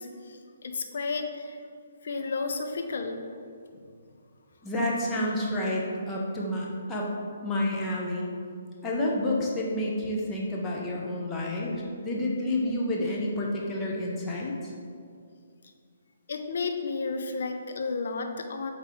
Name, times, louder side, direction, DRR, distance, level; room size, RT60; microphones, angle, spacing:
voice 1, 0.0-1.6 2.0-3.2 3.7-3.8 16.3-18.7, left 4 dB, 60° left, 5 dB, 0.6 m, -32 dB
voice 2, 4.6-7.1 7.4-8.3 8.8-14.5, left 1 dB, 15° left, -4 dB, 1.0 m, -29 dB
8.1 x 3.7 x 3.7 m, 2.2 s
figure-of-eight pair, 135°, 0 cm